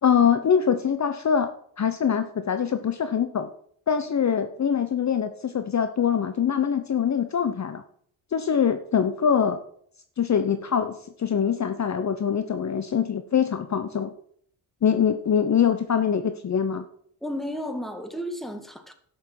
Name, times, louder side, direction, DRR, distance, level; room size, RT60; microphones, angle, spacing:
voice 1, 0.0-1.5 1.8-3.5 3.9-7.8 8.3-9.6 10.2-14.1 14.8-16.8, left 7 dB, 40° left, 9 dB, 1.0 m, -23 dB
voice 2, 17.2-18.9, equal, ahead, 7 dB, 2.0 m, -33 dB
12.0 x 6.6 x 7.7 m, 0.64 s
cardioid pair, 95°, 43 cm